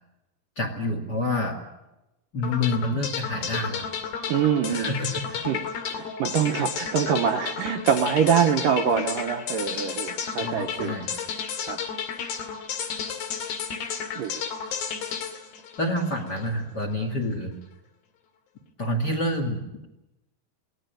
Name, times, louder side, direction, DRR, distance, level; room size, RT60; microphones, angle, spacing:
voice 1, 0.6-1.6 2.3-3.8 4.7-5.5 10.4-11.1 15.8-17.6 18.8-19.8, left 1 dB, 30° left, 4 dB, 2.2 m, -28 dB
sound 1, 2.4-16.5, left 7 dB, 85° left, 4.4 m, -32 dB
voice 2, 4.3-4.9 5.5-5.6 5.9-11.0 11.7-11.8 14.2-14.4, right 8 dB, 70° right, 5 dB, 2.3 m, -24 dB
22.5 x 17.5 x 9.2 m, 0.94 s
omnidirectional pair, 4.7 m